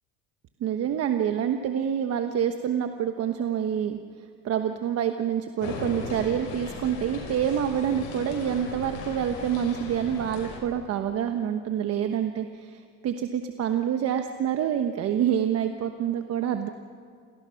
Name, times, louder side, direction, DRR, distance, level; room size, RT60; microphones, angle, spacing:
voice 1, 0.6-4.0 4.4-16.7, right 9 dB, 55° right, 6 dB, 1.2 m, -27 dB
sound 1, 5.6-10.6, left 4 dB, 75° left, 6.5 m, -37 dB
28.0 x 18.0 x 5.9 m, 2.2 s
supercardioid pair, 105°, 30 cm